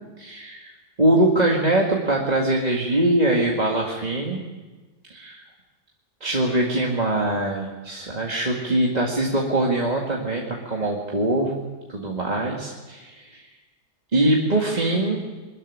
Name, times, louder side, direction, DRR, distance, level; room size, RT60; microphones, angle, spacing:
voice 1, 0.2-0.7 1.0-4.4 5.1-5.4 6.2-11.6 11.9-13.4 14.1-15.2, right 1 dB, 25° right, -2 dB, 2.1 m, -22 dB
22.5 x 14.0 x 10.0 m, 1.3 s
omnidirectional pair, 1.7 m